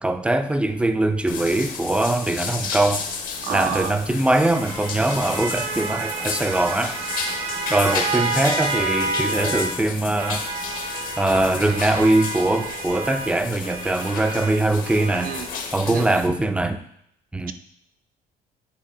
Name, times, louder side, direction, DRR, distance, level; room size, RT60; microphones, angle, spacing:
voice 1, 0.0-3.0 3.5-7.0 7.7-10.4 11.2-15.3 15.7-16.8 17.3-17.5, right 2 dB, 5° right, 9 dB, 0.4 m, -22 dB
sound 1, 1.3-16.3, left 5 dB, 55° left, 0.9 m, -32 dB
sound 2, 3.2-9.8 10.1-15.5, right 3 dB, 80° right, 1.3 m, -30 dB
voice 2, 3.4-4.0 15.2-15.5 15.8-16.2, right 9 dB, 55° right, 9 dB, 0.5 m, -29 dB
8.4 x 3.0 x 4.9 m, 0.74 s
cardioid pair, 110°, 17 cm